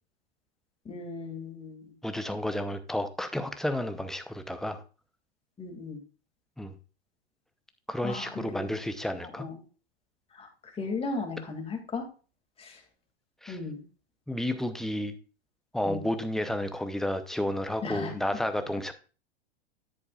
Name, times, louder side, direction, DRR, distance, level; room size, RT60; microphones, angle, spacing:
voice 1, 0.8-1.9 5.6-6.0 8.0-8.7 9.2-9.6 10.3-12.1 12.6-12.8 13.5-13.8 15.8-16.0 17.8-18.1, left 4 dB, 20° left, 2 dB, 2.4 m, -36 dB
voice 2, 2.0-4.8 6.6-6.7 7.9-9.5 13.4-13.6 14.3-15.1 15.7-18.9, left 1 dB, ahead, 8 dB, 0.7 m, -31 dB
10.5 x 8.3 x 2.4 m, 0.36 s
hypercardioid pair, 110°, 33 cm